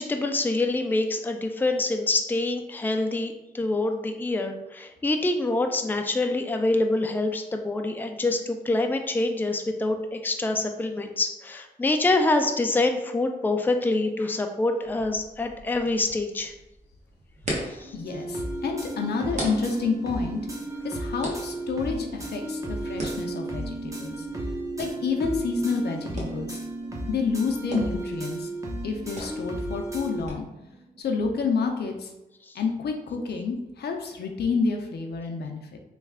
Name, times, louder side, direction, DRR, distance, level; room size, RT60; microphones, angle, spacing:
voice 1, 0.0-16.5 17.8-17.9, left 2 dB, 10° left, 5 dB, 0.3 m, -26 dB
sound 1, 14.8-30.3, right 1 dB, 45° right, 1.1 m, -41 dB
sound 2, 17.6-31.0, right 3 dB, 65° right, 0.8 m, -42 dB
voice 2, 17.7-20.4 20.8-24.3 24.8-26.6 27.1-28.5 28.8-30.5 31.0-32.1 32.5-35.8, left 4 dB, 80° left, 3 dB, 0.5 m, -29 dB
sound 3, 18.1-30.3, right 1 dB, 20° right, 0.8 m, -34 dB
3.2 x 2.3 x 3.5 m, 0.93 s
cardioid pair, 65°, 17 cm